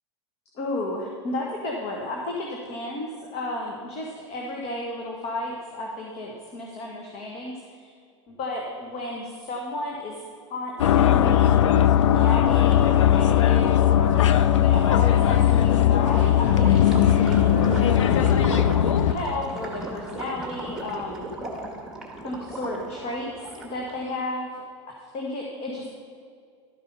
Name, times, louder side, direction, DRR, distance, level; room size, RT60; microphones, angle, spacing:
voice 1, 0.5-7.9 8.3-10.2 10.5-11.5 12.0-14.2 14.6-21.3 22.2-24.5 25.1-25.9, left 1 dB, 45° left, -1 dB, 1.5 m, -33 dB
sound 1, 10.8-19.1, left 10 dB, 80° left, 0.5 m, -18 dB
Gurgling / Liquid, 16.4-24.1, right 2 dB, 5° right, 1.9 m, -36 dB
12.5 x 5.5 x 5.5 m, 2.3 s
hypercardioid pair, 105°, 16 cm